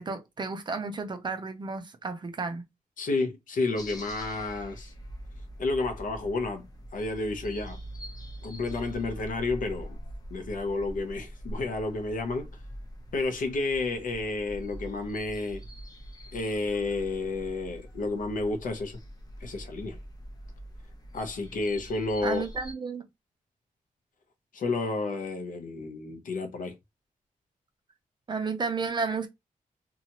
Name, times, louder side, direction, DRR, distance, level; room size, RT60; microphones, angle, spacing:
voice 1, 0.0-2.6 22.2-23.1 28.3-29.3, right 4 dB, 30° right, 0.4 m, -32 dB
voice 2, 3.0-4.9 5.6-6.7 6.9-7.8 8.4-10.0 10.3-12.5 13.1-15.6 16.3-19.0 19.4-20.0 21.1-22.4 24.5-26.7, left 3 dB, 70° left, 0.7 m, -31 dB
sound 1, 3.8-22.7, equal, 25° left, 0.6 m, -44 dB
2.8 x 2.3 x 2.8 m
wide cardioid pair, 175°, 14 cm